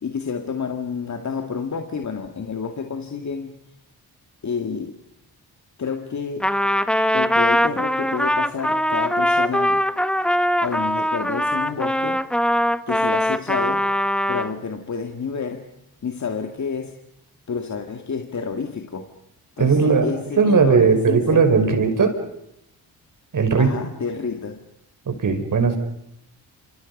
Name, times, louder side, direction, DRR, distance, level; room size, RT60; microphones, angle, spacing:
voice 1, 0.0-3.6 4.4-5.0 5.8-6.5 7.1-9.8 10.6-12.2 12.9-13.8 14.3-15.7 16.0-17.0 17.5-19.1 19.6-21.8 23.6-24.6, left 5 dB, 45° left, 5 dB, 2.2 m, -29 dB
Trumpet, 6.4-14.5, equal, ahead, 1.1 m, -21 dB
voice 2, 19.6-20.1 20.4-22.1 23.3-23.7 25.1-25.8, right 5 dB, 55° right, 7 dB, 5.2 m, -17 dB
28.0 x 27.0 x 5.5 m, 0.79 s
cardioid pair, 80°, 38 cm